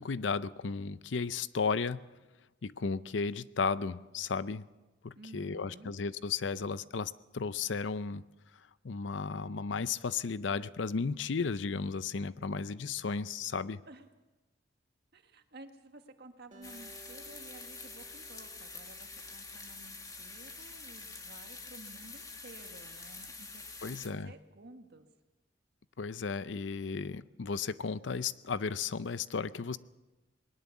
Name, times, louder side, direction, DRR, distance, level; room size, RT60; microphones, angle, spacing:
voice 1, 0.0-2.1 2.6-4.6 5.0-8.2 8.8-13.8 23.8-24.3 26.0-29.8, left 5 dB, 75° left, 16 dB, 0.6 m, -34 dB
voice 2, 5.2-5.9 13.9-14.1 15.1-25.1, right 2 dB, 60° right, 6 dB, 1.8 m, -53 dB
Acoustic guitar, 16.5-19.9, right 4 dB, 45° right, 2.3 m, -58 dB
sound 1, 16.6-24.1, left 3 dB, 20° left, 2.1 m, -47 dB
20.5 x 19.0 x 7.2 m, 1.1 s
head